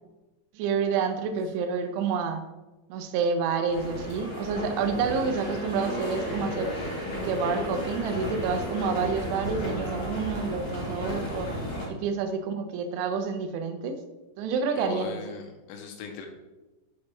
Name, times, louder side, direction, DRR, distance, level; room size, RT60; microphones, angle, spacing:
voice 1, 0.5-2.4 2.9-6.7 7.2-11.5 11.9-14.0 14.4-15.2, right 5 dB, 80° right, 7 dB, 2.8 m, -28 dB
sound 1, 3.7-11.9, left 1 dB, 45° left, 3.8 m, -33 dB
voice 2, 14.7-16.3, left 5 dB, 85° left, 4 dB, 2.8 m, -39 dB
7.3 x 6.3 x 3.2 m, 1.1 s
omnidirectional pair, 5.1 m